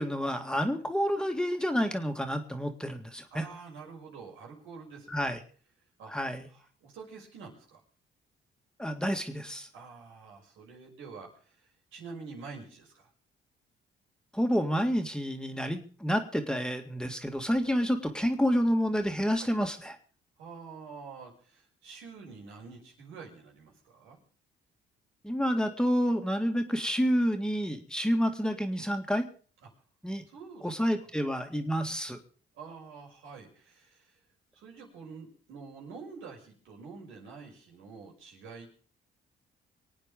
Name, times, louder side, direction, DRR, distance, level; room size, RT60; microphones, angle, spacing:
voice 1, 0.0-3.5 5.1-5.4 6.1-6.5 8.8-9.7 14.3-20.0 25.2-29.2 30.0-30.2 30.6-32.2, equal, 5° left, 5 dB, 1.9 m, -29 dB
voice 2, 3.3-5.1 6.0-6.1 6.5-7.8 9.7-13.1 19.4-19.5 20.4-24.2 30.3-30.7 32.5-34.2 34.5-38.7, right 5 dB, 90° right, -1 dB, 5.7 m, -47 dB
24.0 x 9.1 x 5.2 m, 0.42 s
cardioid pair, 90°, 20 cm